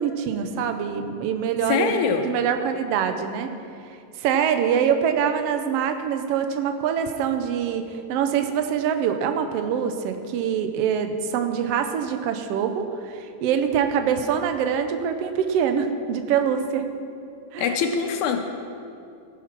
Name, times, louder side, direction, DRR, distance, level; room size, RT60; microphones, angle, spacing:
voice 1, 0.0-1.9 2.2-3.5 3.8-16.9 17.5-17.7, right 8 dB, 70° right, 7 dB, 1.6 m, -24 dB
voice 2, 1.7-2.3 17.6-18.4, left 6 dB, 80° left, 5 dB, 2.1 m, -23 dB
15.0 x 7.3 x 5.9 m, 2.5 s
omnidirectional pair, 3.4 m